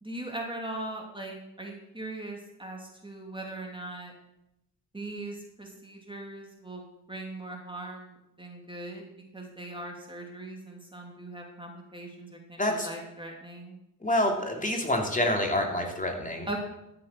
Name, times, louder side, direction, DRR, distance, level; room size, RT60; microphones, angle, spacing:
voice 1, 0.0-4.1 4.9-6.8 7.1-9.0 9.3-13.8 16.5-16.6, right 2 dB, 10° right, 0 dB, 2.6 m, -40 dB
voice 2, 14.0-16.6, left 1 dB, 15° left, 1 dB, 3.0 m, -27 dB
13.5 x 7.0 x 6.0 m, 0.91 s
hypercardioid pair, 50°, 48 cm